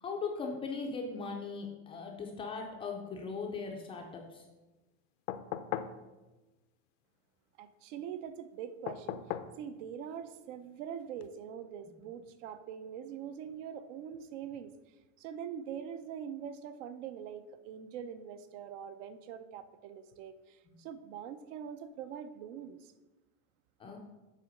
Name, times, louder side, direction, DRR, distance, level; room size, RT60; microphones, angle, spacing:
voice 1, 0.0-4.4 20.7-20.8 23.8-24.0, left 4 dB, 15° left, 1 dB, 0.3 m, -39 dB
sound 1, 5.3-6.0 8.9-9.6 11.2-11.3, left 11 dB, 85° left, 0.6 m, -37 dB
voice 2, 7.6-9.2 9.6-14.7 15.2-22.9, right 8 dB, 80° right, 11 dB, 0.7 m, -43 dB
7.5 x 3.8 x 5.1 m, 1.1 s
cardioid pair, 170°, 37 cm